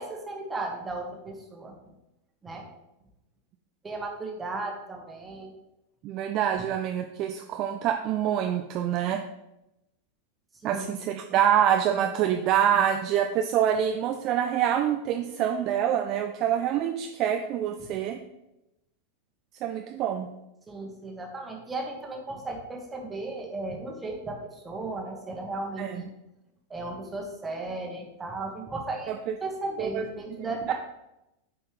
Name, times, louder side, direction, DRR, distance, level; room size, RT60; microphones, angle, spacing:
voice 1, 0.0-1.7 2.4-2.6 3.8-5.5 10.6-10.9 20.7-26.1 26.7-29.1 29.4-30.7, right 2 dB, 15° right, 1 dB, 1.4 m, -35 dB
voice 2, 6.0-9.2 10.6-18.2 19.6-20.3 25.8-26.0 29.1-29.2 29.8-30.0 30.7-30.8, right 9 dB, 40° right, 6 dB, 0.4 m, -26 dB
8.5 x 4.3 x 3.4 m, 0.91 s
figure-of-eight pair, 90°, 0 cm